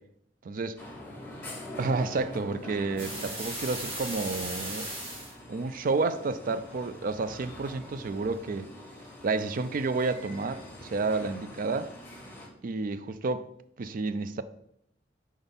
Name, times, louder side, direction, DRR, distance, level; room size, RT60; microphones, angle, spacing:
voice 1, 0.4-0.8 1.8-4.9 5.5-8.7 9.2-11.9 12.6-13.5 13.8-14.4, right 3 dB, 50° right, 0.4 m, -30 dB
sound 1, 0.8-12.5, left 1 dB, 10° left, 1.6 m, -44 dB
sound 2, 3.0-5.3, right 1 dB, 30° right, 2.0 m, -37 dB
4.8 x 4.1 x 5.2 m
head